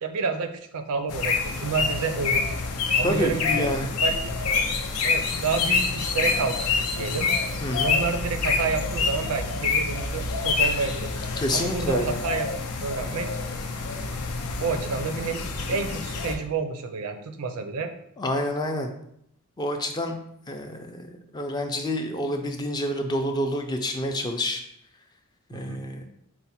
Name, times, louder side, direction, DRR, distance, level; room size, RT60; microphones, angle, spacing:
voice 1, 0.0-2.6 3.0-3.7 4.0-4.2 5.0-7.3 7.8-11.1 11.5-12.5 12.8-13.3 14.6-15.4 15.7-17.9 25.5-25.8, right 4 dB, 80° right, 8 dB, 0.5 m, -29 dB
sound 1, 1.1-16.3, left 4 dB, 90° left, 0.5 m, -27 dB
voice 2, 3.0-3.9 7.6-7.9 11.4-12.2 18.2-18.9 19.6-20.2 20.5-24.6 25.5-26.0, left 1 dB, 20° left, 4 dB, 0.4 m, -28 dB
4.4 x 2.1 x 4.1 m, 0.73 s
head